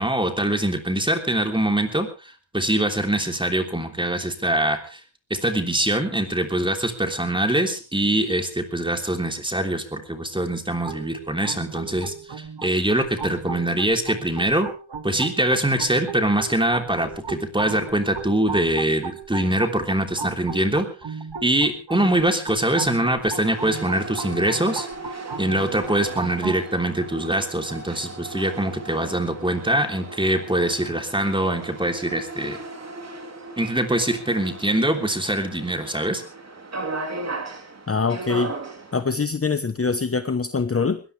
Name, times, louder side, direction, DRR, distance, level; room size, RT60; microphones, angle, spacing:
voice 1, 0.0-5.0 5.3-14.7 15.0-20.9 21.4-24.9 25.4-32.6 33.6-36.2, right 1 dB, 10° right, 5 dB, 3.2 m, -23 dB
sound 1, 10.8-26.6, right 5 dB, 60° right, 2.2 m, -36 dB
sound 2, 23.4-39.0, right 3 dB, 35° right, 3.2 m, -36 dB
voice 2, 37.9-38.5 38.9-41.0, left 4 dB, 30° left, 10 dB, 1.0 m, -23 dB
21.0 x 18.5 x 3.4 m, 0.35 s
wide cardioid pair, 120°, 47 cm